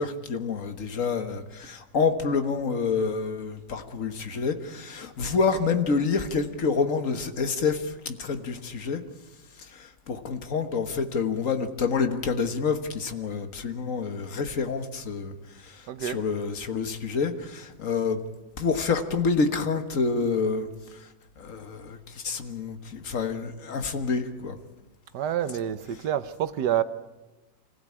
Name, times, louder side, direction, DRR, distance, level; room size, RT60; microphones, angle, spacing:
voice 1, 0.0-9.0 9.6-15.3 15.6-18.2 18.6-20.7 21.4-24.6, left 5 dB, 45° left, 1.7 m, -28 dB
voice 2, 15.9-16.2 25.1-26.8, right 10 dB, 70° right, 1.4 m, -27 dB
25.5 x 16.0 x 8.6 m
omnidirectional pair, 2.0 m